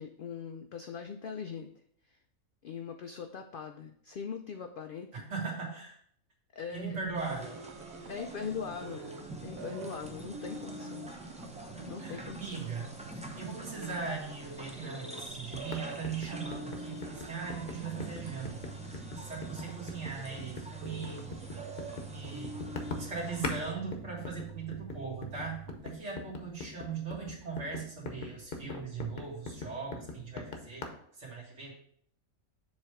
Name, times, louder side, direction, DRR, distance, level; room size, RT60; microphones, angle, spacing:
voice 1, 0.0-1.7 2.0-2.2 2.6-5.3 6.5-7.0 8.1-11.1 11.9-12.7, left 6 dB, 75° left, 5 dB, 0.5 m, -41 dB
voice 2, 5.3-6.0 6.7-7.6 8.0-8.1 12.0-21.3 22.1-22.6 23.0-30.8 31.2-31.7, right 5 dB, 55° right, -3 dB, 2.2 m, -39 dB
sound 1, 6.9-25.8, right 4 dB, 80° right, 1.1 m, -46 dB
sound 2, 7.2-23.7, right 1 dB, 10° right, 0.4 m, -47 dB
sound 3, 15.5-23.6 23.9-30.9, left 3 dB, 45° left, 0.9 m, -41 dB
7.3 x 3.2 x 4.7 m, 0.64 s
omnidirectional pair, 1.4 m